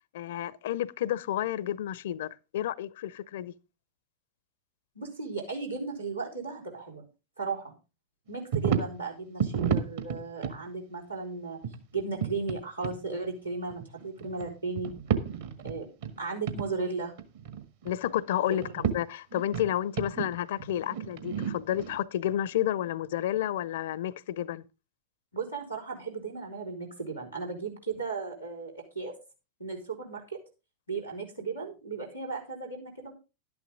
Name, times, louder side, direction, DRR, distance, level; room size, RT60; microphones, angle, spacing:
voice 1, 0.1-3.5 17.8-24.6, left 12 dB, 55° left, 0.6 m, -31 dB
voice 2, 4.9-7.0 7.4-7.7 8.3-11.6 11.9-14.9 15.6-15.9 16.2-17.1 18.5-18.7 25.3-29.1 29.6-30.4 30.9-33.1, right 4 dB, 90° right, 4.4 m, -35 dB
sound 1, 8.5-9.0 9.4-10.6 11.6-12.6 12.8-13.0 13.7-14.5 14.8-16.2 16.5-16.7 17.0-18.0 18.5-18.9 19.3-22.0, right 7 dB, 55° right, 1.6 m, -31 dB
12.0 x 10.5 x 3.7 m
figure-of-eight pair, 90°, 0 cm